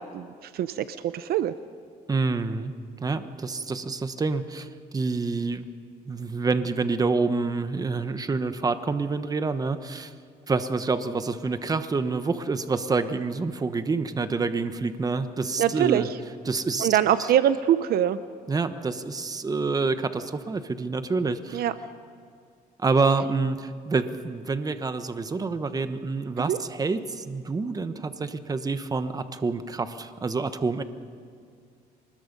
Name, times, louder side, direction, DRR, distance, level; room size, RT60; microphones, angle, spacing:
voice 1, 0.0-1.5 15.6-16.0 16.8-18.2 21.5-21.7 26.5-26.6, right 11 dB, 65° right, 13 dB, 0.7 m, -23 dB
voice 2, 2.1-2.7 3.0-5.7 6.1-10.1 10.5-16.1 16.4-16.9 17.2-17.3 18.5-21.7 22.8-30.8, right 4 dB, 20° right, 10 dB, 1.1 m, -27 dB
24.5 x 20.5 x 5.4 m, 2.3 s
cardioid pair, 110°, 17 cm